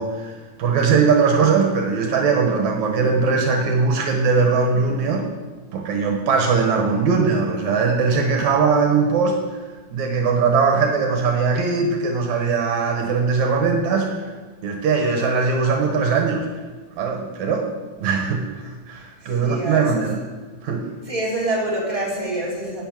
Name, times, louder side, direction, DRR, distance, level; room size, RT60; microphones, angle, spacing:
voice 1, 0.0-5.2 5.7-9.6 9.9-14.2 14.6-16.5 17.0-17.7 18.0-20.2 20.6-20.9, right 5 dB, 75° right, 2 dB, 2.6 m, -20 dB
voice 2, 19.2-19.9 21.1-22.8, right 1 dB, 10° right, -5 dB, 3.3 m, -26 dB
11.0 x 6.3 x 9.1 m, 1.3 s
omnidirectional pair, 3.4 m